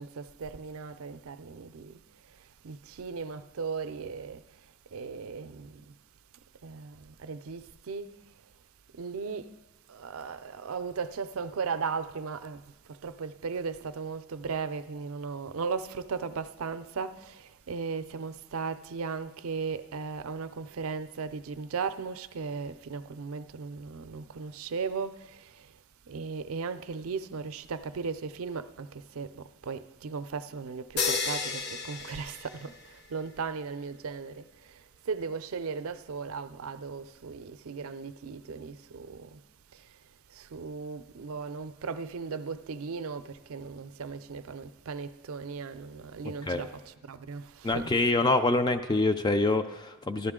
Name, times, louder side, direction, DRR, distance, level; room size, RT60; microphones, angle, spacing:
voice 1, 0.0-6.0 6.6-8.4 8.9-9.5 9.9-25.8 26.1-39.4 39.7-47.9, right 5 dB, 70° right, 0.5 m, -37 dB
sound 1, 31.0-33.1, left 4 dB, 50° left, 0.8 m, -32 dB
voice 2, 47.6-50.3, left 2 dB, 20° left, 0.3 m, -25 dB
14.5 x 11.5 x 3.7 m
head